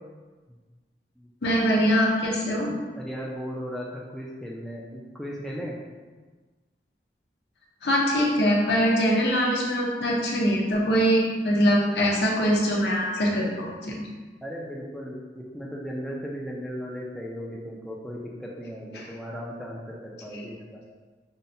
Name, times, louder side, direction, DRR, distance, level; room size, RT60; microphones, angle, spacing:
voice 1, 1.4-2.7 7.8-14.0 18.9-19.0 20.3-20.4, equal, 75° left, -2 dB, 0.7 m, -23 dB
voice 2, 2.9-5.7 14.4-20.8, equal, ahead, -4 dB, 0.4 m, -36 dB
5.4 x 2.1 x 2.6 m, 1.3 s
head